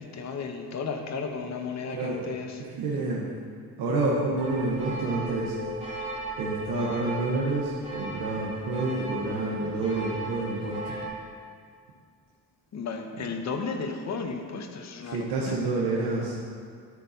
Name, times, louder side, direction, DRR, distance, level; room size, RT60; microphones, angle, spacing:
voice 1, 0.0-2.5 12.7-15.5, left 5 dB, 45° left, 5 dB, 0.8 m, -34 dB
voice 2, 1.9-2.2 2.7-3.2 3.8-5.6 6.4-11.0 13.2-13.3 15.0-16.4, right 2 dB, 85° right, -5 dB, 1.1 m, -29 dB
sound 1, 4.4-11.1, right 1 dB, 20° right, 2.2 m, -36 dB
12.0 x 4.1 x 4.2 m, 2.1 s
cardioid pair, 95°, 37 cm